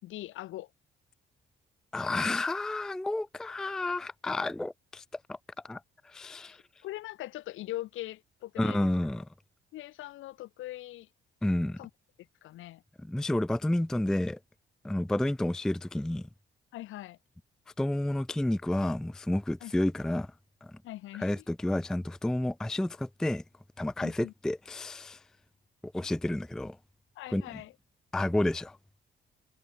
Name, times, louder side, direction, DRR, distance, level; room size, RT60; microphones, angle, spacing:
voice 1, 0.0-0.7 6.5-6.6 6.8-8.9 9.7-11.1 11.8-11.9 12.4-12.8 16.7-17.2 19.6-19.7 20.8-21.4 24.0-24.3 27.2-27.7, left 15 dB, 90° left, 3.9 m, -41 dB
voice 2, 1.9-5.0 5.3-5.4 5.6-6.6 8.6-9.3 11.4-11.8 13.0-14.4 14.8-16.3 17.8-20.3 20.6-20.8 21.2-23.4 23.8-25.2 25.8-26.8 27.3-27.6 28.1-28.8, left 1 dB, 5° left, 0.3 m, -30 dB
cardioid pair, 90°, 20 cm